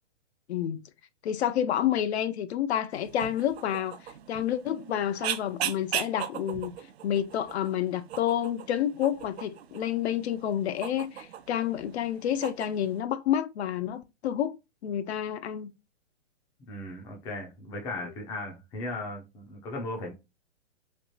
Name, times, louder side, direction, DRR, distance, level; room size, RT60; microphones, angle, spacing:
voice 1, 0.5-0.8 1.2-6.7 7.0-14.6 14.8-15.7 18.0-18.1, left 10 dB, 65° left, 0.5 m, -29 dB
sound 1, 2.9-13.0, right 11 dB, 65° right, 0.5 m, -39 dB
voice 2, 16.7-20.1, left 2 dB, 10° left, 0.4 m, -37 dB
3.2 x 2.4 x 2.7 m
hypercardioid pair, 140°, 35 cm